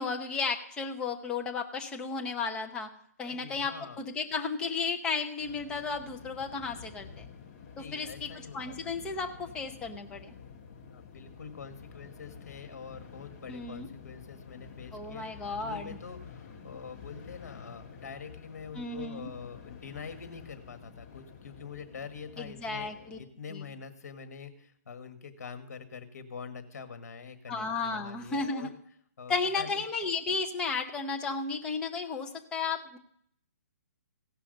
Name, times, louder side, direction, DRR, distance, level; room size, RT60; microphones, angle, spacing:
voice 1, 0.0-2.9 3.2-7.2 7.9-8.3 8.5-10.3 13.5-13.9 14.9-15.9 18.7-19.3 22.4-23.2 23.5-23.6 27.5-28.7 29.3-33.0, left 4 dB, 10° left, 3 dB, 0.7 m, -33 dB
voice 2, 3.2-4.0 7.8-8.8 10.9-22.9 23.2-28.7 29.2-29.8, left 6 dB, 70° left, 9 dB, 1.6 m, -45 dB
sound 1, 5.4-23.2, left 6 dB, 30° left, 1.7 m, -49 dB
16.0 x 5.6 x 6.5 m, 0.67 s
hypercardioid pair, 165°, 9 cm